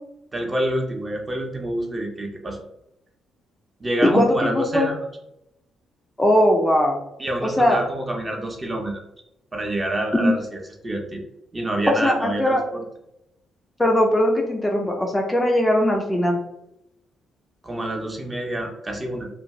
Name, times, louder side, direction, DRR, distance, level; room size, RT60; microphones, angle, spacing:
voice 1, 0.3-2.6 3.8-5.0 7.2-9.0 9.5-11.2 11.5-12.8 17.6-19.3, right 1 dB, 25° right, 1 dB, 0.7 m, -27 dB
voice 2, 4.0-4.9 6.2-7.0 7.4-7.8 10.1-10.3 12.0-12.6 13.8-16.4, left 1 dB, 15° left, 0 dB, 0.4 m, -19 dB
2.5 x 2.2 x 3.1 m, 0.85 s
cardioid pair, 90°, 0 cm